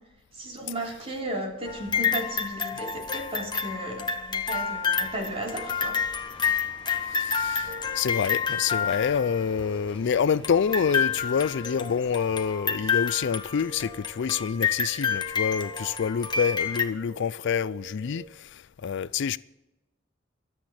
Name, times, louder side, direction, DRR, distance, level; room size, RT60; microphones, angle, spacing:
voice 1, 0.3-6.0, right 1 dB, 30° right, 3.4 m, -35 dB
sound 1, 1.7-9.6 10.4-16.9, left 6 dB, 25° left, 1.2 m, -29 dB
sound 2, 5.1-12.5, left 1 dB, 5° left, 3.0 m, -51 dB
voice 2, 7.2-7.7 8.0-19.4, left 7 dB, 60° left, 0.4 m, -27 dB
sound 3, 7.7-18.3, right 3 dB, 55° right, 1.1 m, -47 dB
23.5 x 8.2 x 4.3 m
head